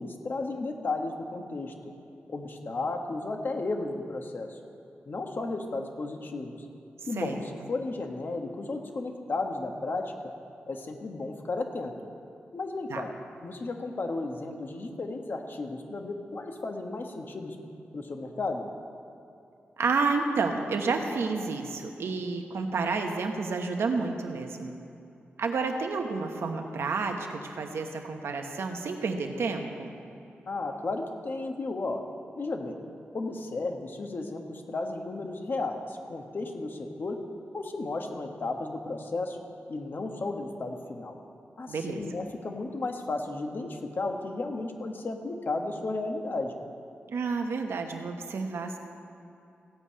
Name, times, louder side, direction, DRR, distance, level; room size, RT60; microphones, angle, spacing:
voice 1, 0.0-1.7 2.3-4.6 5.1-6.6 7.1-10.1 10.7-11.9 12.5-13.1 13.4-17.6 17.9-18.7 30.4-32.0 32.3-32.8 33.1-37.2 37.5-39.4 39.7-41.1 41.6-46.6, left 3 dB, 55° left, 3 dB, 1.4 m, -34 dB
voice 2, 19.8-24.7 25.4-29.9 41.7-42.0 47.1-48.8, right 4 dB, 80° right, 4 dB, 1.1 m, -30 dB
16.0 x 5.5 x 8.6 m, 2.7 s
cardioid pair, 75°, 4 cm